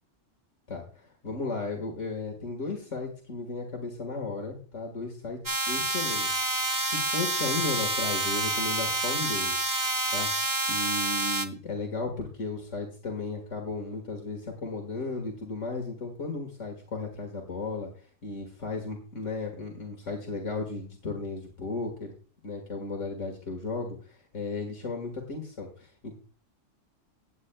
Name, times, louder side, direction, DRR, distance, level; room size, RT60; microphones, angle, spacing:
voice 1, 0.7-5.4 5.7-17.9 18.2-22.1 22.4-26.2, left 3 dB, 70° left, 1 dB, 2.1 m, -35 dB
sound 1, 5.5-11.5, right 2 dB, 20° right, 0.6 m, -28 dB
16.5 x 9.0 x 2.3 m, 0.41 s
omnidirectional pair, 1.3 m